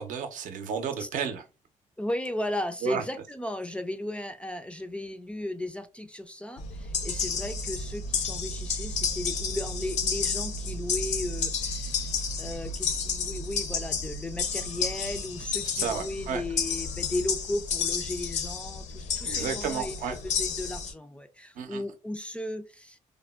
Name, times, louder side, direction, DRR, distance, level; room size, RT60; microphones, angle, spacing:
voice 1, 0.0-1.4 2.8-3.0 15.8-16.4 19.2-20.2 21.6-21.8, right 7 dB, 70° right, 0.6 m, -32 dB
voice 2, 2.0-23.0, left 1 dB, 10° left, 0.3 m, -35 dB
sound 1, 6.6-20.9, left 5 dB, 60° left, 0.5 m, -31 dB
3.3 x 2.1 x 2.2 m
cardioid pair, 105°, 14 cm